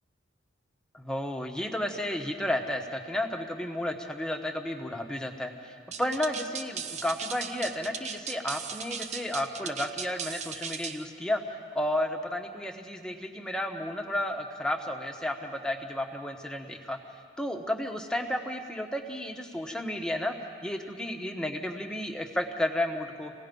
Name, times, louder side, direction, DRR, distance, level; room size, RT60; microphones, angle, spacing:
voice 1, 0.9-11.4 11.7-17.0 17.4-20.3 20.6-23.3, left 1 dB, 5° left, 3 dB, 1.3 m, -32 dB
sound 1, 5.9-11.0, right 7 dB, 35° right, 0.8 m, -37 dB
28.5 x 18.0 x 5.4 m, 2.2 s
head